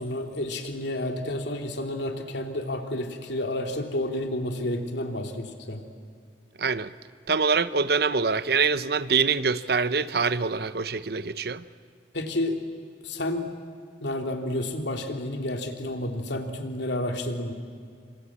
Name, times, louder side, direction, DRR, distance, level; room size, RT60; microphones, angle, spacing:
voice 1, 0.0-5.8 12.1-12.6 13.0-13.5 14.0-17.5, left 1 dB, 75° left, 2.9 m, -30 dB
voice 2, 6.6-6.9 7.3-11.6, right 5 dB, 60° right, 0.8 m, -25 dB
27.0 x 26.0 x 8.5 m
head